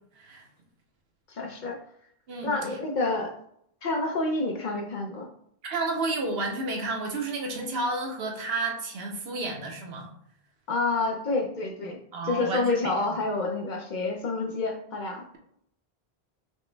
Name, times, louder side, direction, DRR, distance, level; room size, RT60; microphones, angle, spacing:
voice 1, 0.2-0.5 2.3-2.5 5.6-10.1 12.1-12.9, right 2 dB, 70° right, 2 dB, 1.0 m, -31 dB
voice 2, 1.3-1.8 2.4-3.3 3.8-5.3 10.7-12.0 12.2-15.3, left 3 dB, 55° left, 2 dB, 0.6 m, -28 dB
5.0 x 2.1 x 3.2 m, 0.70 s
omnidirectional pair, 1.0 m